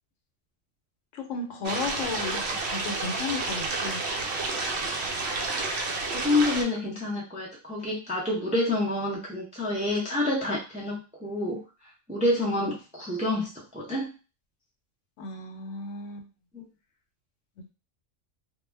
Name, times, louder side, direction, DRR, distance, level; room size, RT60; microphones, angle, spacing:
voice 1, 1.1-4.0 15.2-16.3, left 4 dB, 85° left, 4 dB, 1.0 m, -34 dB
sound 1, 1.6-6.6, right 3 dB, 65° right, 0.7 m, -30 dB
voice 2, 6.1-11.6 12.1-13.5 13.7-14.1 16.5-16.6, left 2 dB, 10° right, -4 dB, 0.3 m, -28 dB
2.3 x 2.1 x 3.2 m, 0.31 s
omnidirectional pair, 1.3 m